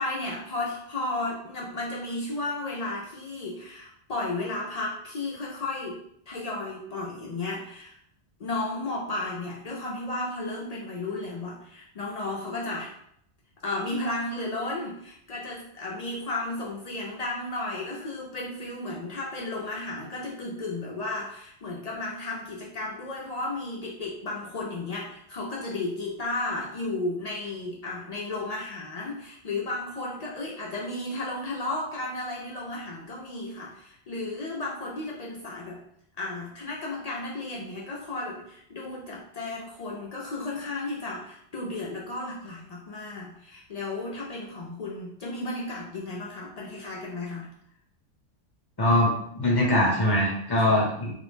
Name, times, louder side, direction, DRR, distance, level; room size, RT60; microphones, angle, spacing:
voice 1, 0.0-6.0 6.3-8.0 8.4-12.9 13.6-35.8 36.2-47.5 50.6-50.8, left 2 dB, 65° left, -3 dB, 0.3 m, -33 dB
voice 2, 48.8-49.1 49.3-51.1, left 1 dB, 25° left, -3 dB, 0.6 m, -22 dB
2.5 x 2.0 x 3.1 m, 0.71 s
omnidirectional pair, 1.2 m